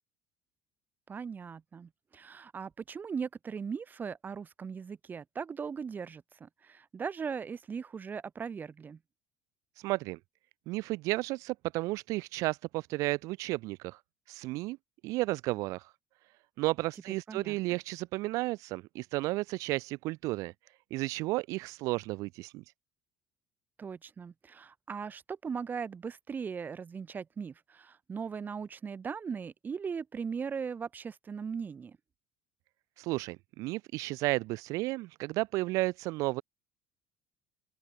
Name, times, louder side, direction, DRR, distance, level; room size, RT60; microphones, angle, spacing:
voice 1, 1.1-9.0 17.3-17.8 23.8-32.0, right 6 dB, 30° right, 1.2 m, -39 dB
voice 2, 9.8-10.2 10.7-14.0 14.3-14.8 15.0-15.9 16.6-20.5 20.9-22.6 33.0-36.4, right 20 dB, 70° right, 0.4 m, -33 dB
open air
supercardioid pair, 80°, 6 cm